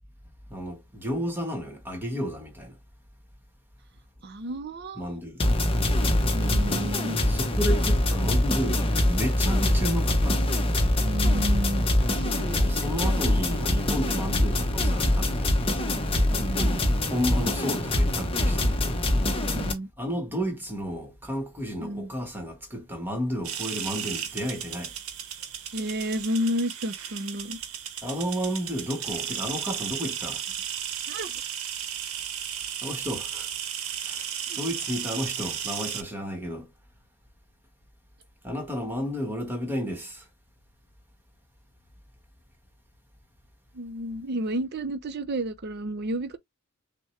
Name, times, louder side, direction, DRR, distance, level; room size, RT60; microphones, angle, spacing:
voice 1, 0.5-2.7 4.9-5.4 7.2-10.4 12.6-15.7 16.6-16.8 17.1-19.1 20.0-24.9 28.0-30.4 32.8-33.5 34.0-34.2 34.5-36.7 38.4-40.2, equal, 10° right, 1.2 m, -32 dB
voice 2, 4.2-5.2 6.3-7.2 11.0-11.9 12.1-12.6 16.3-16.8 19.2-19.9 21.8-22.1 25.7-27.6 31.1-31.4 34.5-34.6 43.7-46.4, right 1 dB, 45° right, 0.5 m, -31 dB
sound 1, 5.4-19.7, left 1 dB, 25° left, 0.8 m, -24 dB
sound 2, 23.4-36.0, right 9 dB, 70° right, 0.9 m, -34 dB
6.3 x 2.2 x 3.1 m
head